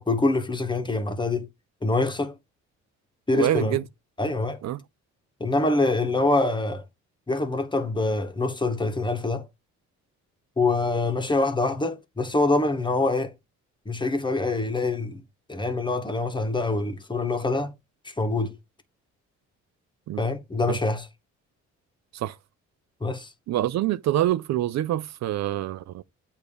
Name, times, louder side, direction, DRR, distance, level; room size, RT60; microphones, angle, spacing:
voice 1, 0.0-1.5 1.8-2.3 3.3-3.8 4.2-4.6 5.4-6.8 7.3-9.5 10.6-13.3 13.8-15.2 15.5-17.7 18.0-18.6 20.2-21.1 23.0-23.3, left 2 dB, 15° left, 1.2 m, -25 dB
voice 2, 3.3-3.8 4.6-4.8 20.1-20.2 20.7-20.8 22.1-22.3 23.5-26.0, right 13 dB, 65° right, 0.5 m, -26 dB
8.1 x 2.7 x 5.1 m
cardioid pair, 90°, 30 cm